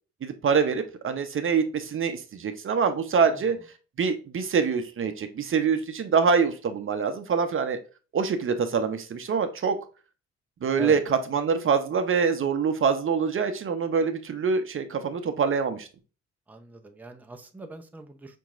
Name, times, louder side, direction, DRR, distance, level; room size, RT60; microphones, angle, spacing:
voice 1, 0.2-3.6 4.0-7.8 8.1-9.8 10.6-15.9, right 5 dB, 45° right, 0.7 m, -25 dB
voice 2, 16.5-18.4, right 2 dB, 5° right, 0.7 m, -41 dB
5.3 x 2.9 x 2.4 m
cardioid pair, 90°, 30 cm